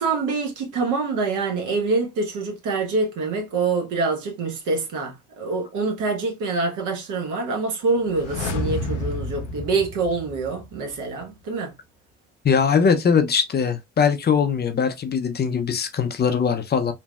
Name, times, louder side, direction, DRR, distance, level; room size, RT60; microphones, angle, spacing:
voice 1, 0.0-11.7, right 3 dB, 55° right, 1.1 m, -25 dB
sound 1, 8.0-10.9 11.2-11.3, left 2 dB, 75° left, 0.6 m, -30 dB
voice 2, 12.4-16.9, left 6 dB, 25° left, 0.6 m, -21 dB
3.1 x 2.6 x 2.2 m
figure-of-eight pair, 55°, 36 cm